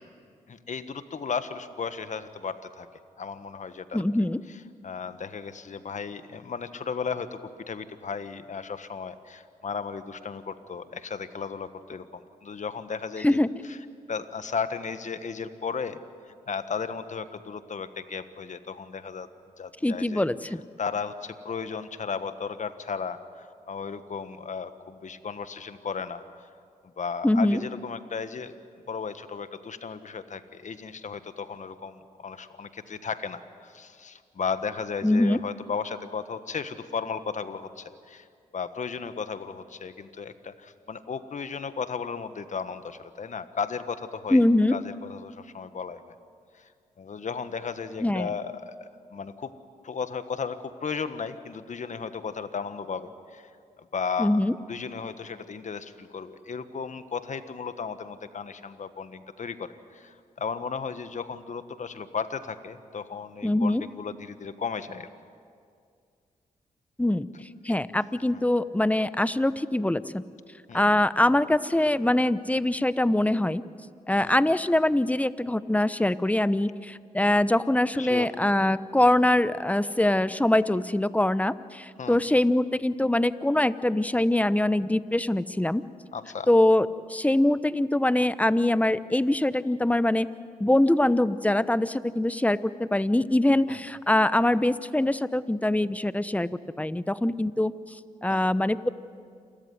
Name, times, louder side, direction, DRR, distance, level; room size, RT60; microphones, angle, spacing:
voice 1, 0.5-2.9 3.2-4.0 4.8-7.4 7.7-13.4 13.6-13.8 14.1-16.0 16.5-19.3 19.6-20.2 20.8-26.4 27.0-28.5 28.9-38.3 38.5-44.4 44.7-46.0 46.5-46.7 47.0-49.5 49.8-53.5 53.8-54.4 54.7-65.1 68.3-68.4 70.7-70.8 74.2-74.3 78.0-78.3 82.0-82.2 86.1-86.5 93.7-93.8 98.3-98.4, left 5 dB, 55° left, 11 dB, 1.5 m, -35 dB
voice 2, 3.9-4.4 13.2-13.5 19.8-20.6 27.2-27.6 35.0-35.4 44.3-44.8 48.0-48.3 54.2-54.5 63.4-63.8 67.0-67.3 67.6-70.2 70.7-73.6 74.1-85.8 86.5-90.3 90.6-96.5 96.8-97.7 98.2-98.9, left 1 dB, 10° left, 15 dB, 0.9 m, -23 dB
28.0 x 14.0 x 9.6 m, 2.2 s
supercardioid pair, 50°, 15 cm